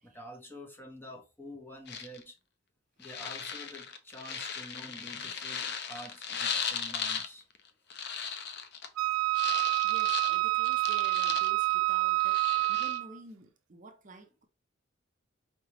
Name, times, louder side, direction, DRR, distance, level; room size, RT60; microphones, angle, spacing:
voice 1, 0.0-2.4 3.0-7.4, left 1 dB, 10° left, 0.9 m, -48 dB
sound 1, 1.9-2.2 3.0-7.3 7.6-8.9 9.3-11.7 12.1-13.0, left 6 dB, 55° left, 0.6 m, -37 dB
Wind instrument woodwind instrument, 9.0-13.2, right 22 dB, 90° right, 0.4 m, -28 dB
voice 2, 9.8-14.4, right 2 dB, 40° right, 0.6 m, -50 dB
4.8 x 3.3 x 2.9 m
head